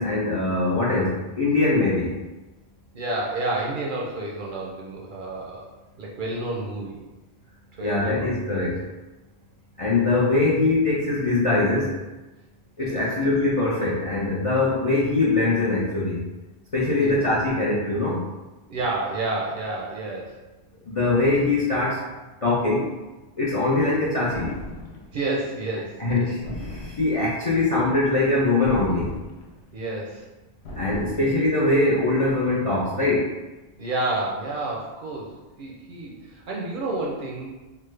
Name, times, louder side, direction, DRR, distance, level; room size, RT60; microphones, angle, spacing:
voice 1, 0.0-2.1 7.8-8.8 9.8-12.0 12.8-16.2 16.7-18.2 20.9-22.1 22.4-22.9 23.4-24.5 26.0-26.4 26.7-29.1 30.8-33.3, left 2 dB, 50° left, -6 dB, 0.4 m, -22 dB
voice 2, 2.9-5.7 6.0-7.0 7.7-8.3 8.6-8.7 12.8-13.1 16.9-17.3 18.7-20.4 25.1-26.3 29.7-30.3 33.8-37.5, right 2 dB, 60° right, -3 dB, 0.6 m, -30 dB
sound 1, 24.3-25.2 26.4-27.4 28.6-29.7 30.6-31.5, left 1 dB, 75° left, 0.9 m, -38 dB
3.3 x 2.0 x 3.1 m, 1.1 s
omnidirectional pair, 1.1 m